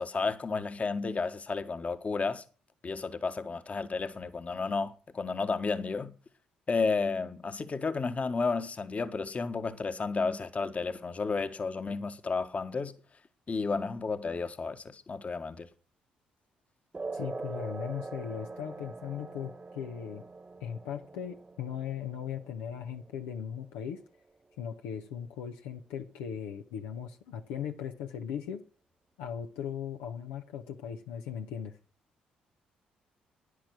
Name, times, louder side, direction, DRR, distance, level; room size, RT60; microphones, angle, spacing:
voice 1, 0.0-2.4 2.8-6.1 6.7-12.9 13.5-15.7, left 4 dB, 35° left, 1.5 m, -32 dB
sound 1, 16.9-23.9, right 3 dB, 30° right, 1.2 m, -43 dB
voice 2, 17.1-20.2 20.6-24.0 24.6-28.6 29.2-31.8, left 8 dB, 75° left, 1.0 m, -38 dB
11.5 x 10.5 x 6.2 m
hypercardioid pair, 45°, 4 cm